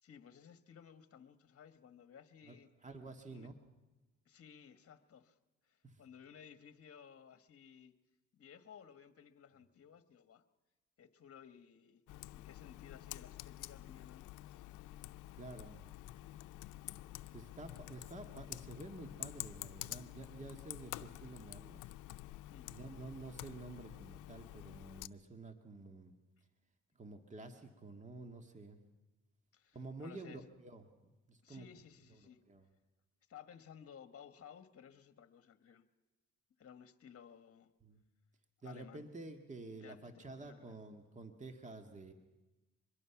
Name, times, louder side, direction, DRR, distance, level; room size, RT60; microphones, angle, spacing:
voice 1, 0.0-2.7 3.3-3.5 4.2-5.4 5.6-8.0 8.3-10.4 11.0-12.0 12.3-14.6 22.5-22.7 29.5-30.5 31.4-32.4 33.3-35.9 36.6-37.7 38.6-39.1 39.7-40.8, left 8 dB, 50° left, 10 dB, 1.5 m, -57 dB
voice 2, 2.8-3.5 5.8-6.0 15.4-15.8 17.3-21.8 22.7-26.1 26.9-28.8 29.7-31.7 32.1-32.2 32.5-32.6 37.8-38.0 38.6-42.1, right 2 dB, 25° right, 6 dB, 1.9 m, -50 dB
Computer keyboard, 12.1-25.1, left 16 dB, 90° left, 0.6 m, -49 dB
24.5 x 21.5 x 6.0 m, 1.1 s
cardioid pair, 90°, 30 cm